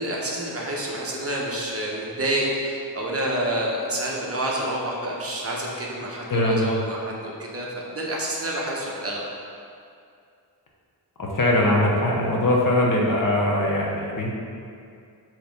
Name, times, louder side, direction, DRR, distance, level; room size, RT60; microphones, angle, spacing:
voice 1, 0.0-7.7 7.9-9.2, right 1 dB, 35° right, -3 dB, 0.9 m, -28 dB
voice 2, 6.3-6.7 11.2-14.3, left 1 dB, 50° left, -2 dB, 0.9 m, -21 dB
6.9 x 3.1 x 5.2 m, 2.4 s
wide cardioid pair, 170°, 41 cm